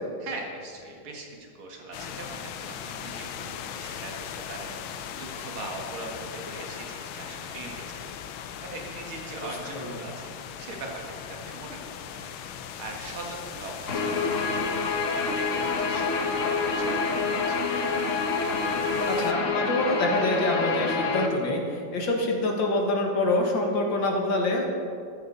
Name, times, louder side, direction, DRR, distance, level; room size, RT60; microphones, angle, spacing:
voice 1, 0.2-8.3 8.6-10.3 10.6-11.8 12.1-12.3 12.8-14.6 15.3-17.0 17.3-17.7, right 3 dB, 85° right, 0 dB, 2.7 m, -41 dB
sound 1, 1.9-19.3, left 8 dB, 85° left, 1.6 m, -39 dB
Guitar, 13.9-21.3, left 4 dB, 45° left, 1.2 m, -27 dB
voice 2, 19.0-24.7, left 1 dB, 65° left, 0 dB, 2.4 m, -26 dB
14.0 x 13.5 x 4.0 m, 2.4 s
omnidirectional pair, 2.2 m